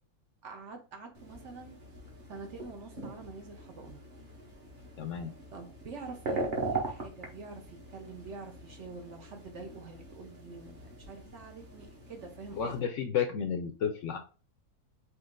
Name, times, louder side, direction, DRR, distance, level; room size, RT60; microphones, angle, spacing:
voice 1, 0.4-1.7 2.3-4.0 5.5-12.8, right 4 dB, 60° right, 4 dB, 0.9 m, -46 dB
sound 1, 1.1-12.8, right 3 dB, 35° right, 1.1 m, -41 dB
voice 2, 5.0-5.3 12.5-14.2, left 7 dB, 65° left, 6 dB, 0.8 m, -32 dB
4.4 x 2.7 x 3.7 m, 0.35 s
omnidirectional pair, 1.6 m